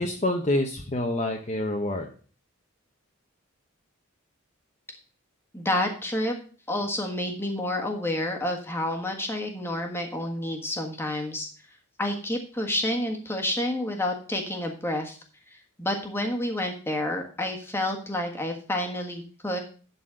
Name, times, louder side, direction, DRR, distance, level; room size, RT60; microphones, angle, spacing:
voice 1, 0.0-2.1, left 1 dB, 30° left, 2 dB, 0.8 m, -27 dB
voice 2, 5.5-6.4 6.7-11.5 12.0-15.2 15.5-19.6, left 1 dB, 10° left, 2 dB, 1.5 m, -29 dB
11.5 x 4.2 x 6.3 m, 0.41 s
head